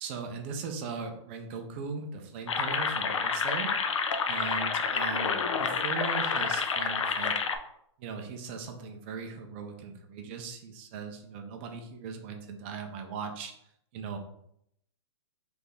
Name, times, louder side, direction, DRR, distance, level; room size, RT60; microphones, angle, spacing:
voice 1, 0.0-3.7 4.3-7.4 8.0-13.5 13.9-14.2, right 5 dB, 25° right, 4 dB, 0.5 m, -39 dB
sound 1, 2.5-7.6, left 5 dB, 80° left, 0.6 m, -29 dB
4.0 x 3.3 x 3.5 m, 0.74 s
hypercardioid pair, 170°, 16 cm